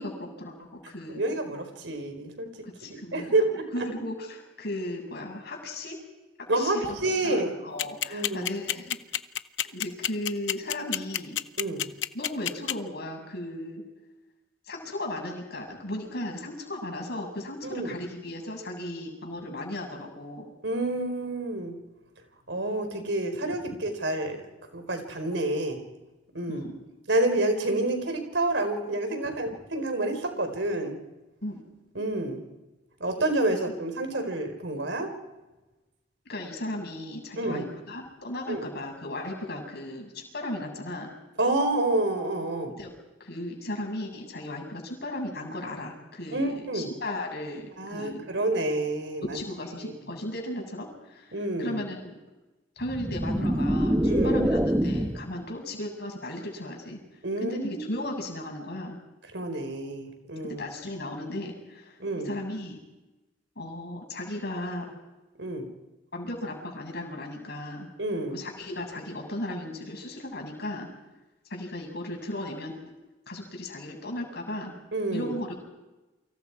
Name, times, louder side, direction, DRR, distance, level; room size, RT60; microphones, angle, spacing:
voice 1, 0.0-1.2 2.8-3.3 3.7-6.0 6.5-7.0 7.2-9.0 9.7-11.4 12.1-13.8 14.7-20.5 26.5-26.7 31.4-31.6 36.3-41.1 42.8-42.9 43.2-48.2 49.3-52.1 52.8-57.0 57.4-59.0 60.4-62.0 62.2-62.8 63.6-64.9 66.1-67.9 68.3-70.9 71.5-72.9 73.3-74.7 75.1-75.6, left 1 dB, 60° left, 2 dB, 6.8 m, -36 dB
voice 2, 1.1-2.5 2.9-3.9 6.5-7.6 8.1-8.5 11.6-11.9 17.7-17.9 20.6-21.8 22.5-24.4 24.7-25.8 26.3-26.7 27.1-31.0 31.9-32.4 33.0-35.1 37.4-37.7 38.5-38.6 41.4-42.7 46.3-46.9 47.8-49.4 49.8-49.9 51.3-51.8 54.0-54.4 57.2-57.9 59.3-60.6 62.0-62.3 65.4-65.7 68.0-68.4 74.9-75.3, right 2 dB, 75° right, 6 dB, 4.6 m, -28 dB
sound 1, 7.8-12.7, left 11 dB, 80° left, 0.8 m, -27 dB
sound 2, 52.8-55.3, equal, 10° right, 1.1 m, -25 dB
29.5 x 25.0 x 4.8 m, 1.1 s
head